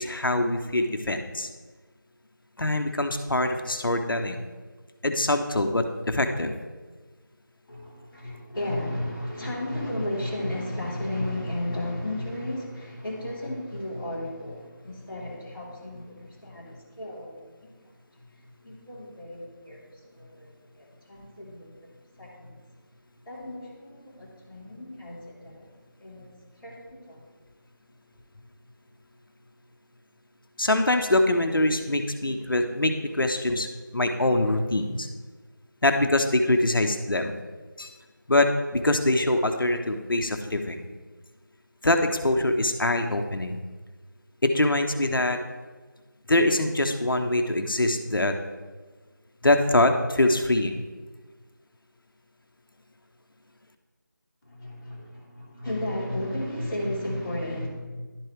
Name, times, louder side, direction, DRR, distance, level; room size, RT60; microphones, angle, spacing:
voice 1, 0.0-1.5 2.6-4.4 5.0-6.5 30.6-33.7 33.9-35.1 35.8-37.3 37.8-37.9 38.3-40.8 41.8-43.6 44.4-45.4 46.3-48.3 49.4-50.8, left 1 dB, 85° left, 6 dB, 0.8 m, -24 dB
voice 2, 7.7-17.7 18.1-22.8 23.1-25.7 26.0-27.3 54.4-57.7, left 1 dB, 10° left, -13 dB, 1.8 m, -34 dB
11.5 x 4.6 x 3.2 m, 1.4 s
figure-of-eight pair, 175°, 11 cm